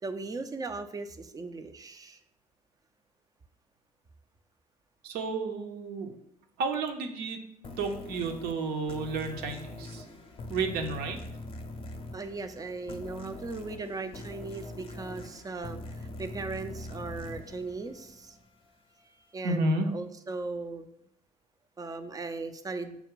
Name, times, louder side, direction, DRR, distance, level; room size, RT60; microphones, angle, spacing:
voice 1, 0.0-2.2 12.1-18.4 19.3-20.9 21.8-23.0, right 3 dB, 20° right, 9 dB, 0.4 m, -38 dB
voice 2, 5.0-6.1 6.6-7.4 7.8-10.0 10.5-11.2 19.4-19.9, right 3 dB, 55° right, 4 dB, 0.7 m, -31 dB
sound 1, 7.6-18.8, left 2 dB, 30° left, 0.6 m, -43 dB
5.8 x 2.2 x 3.7 m, 0.72 s
figure-of-eight pair, 55°, 20 cm